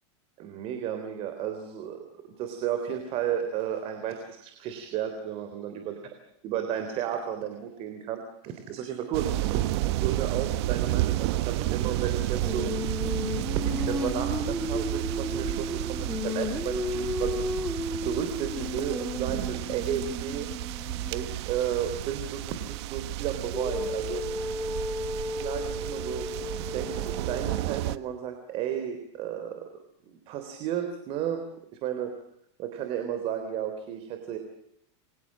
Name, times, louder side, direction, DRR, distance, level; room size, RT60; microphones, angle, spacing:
voice 1, 0.4-6.0 6.4-9.7 9.9-12.7 13.6-17.4 18.0-20.5 21.1-24.2 25.3-26.3 26.6-29.7 30.0-31.4 31.8-32.1 32.6-34.4, right 9 dB, 40° right, 7 dB, 3.6 m, -33 dB
sound 1, 9.1-28.0, right 15 dB, 60° right, 1.3 m, -31 dB
Female singing, 12.4-21.3 23.5-27.7, left 2 dB, 5° left, 2.3 m, -34 dB
28.5 x 23.5 x 7.6 m, 0.75 s
supercardioid pair, 155°, 16 cm